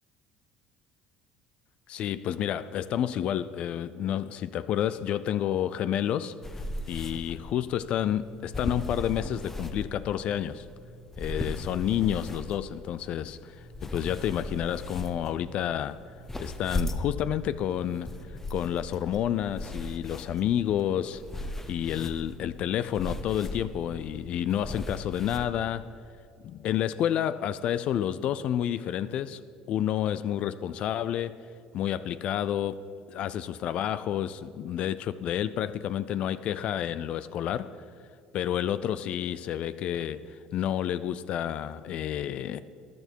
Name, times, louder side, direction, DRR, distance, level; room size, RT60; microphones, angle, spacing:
voice 1, 1.9-6.3 6.9-10.7 11.2-16.0 16.4-18.1 18.5-25.9 26.4-31.4 31.7-37.8 38.3-42.6, left 10 dB, 60° left, 14 dB, 0.4 m, -30 dB
sound 1, 6.4-25.5, left 2 dB, 15° left, 1.0 m, -38 dB
13.5 x 11.0 x 4.5 m, 2.4 s
supercardioid pair, 85°, 2 cm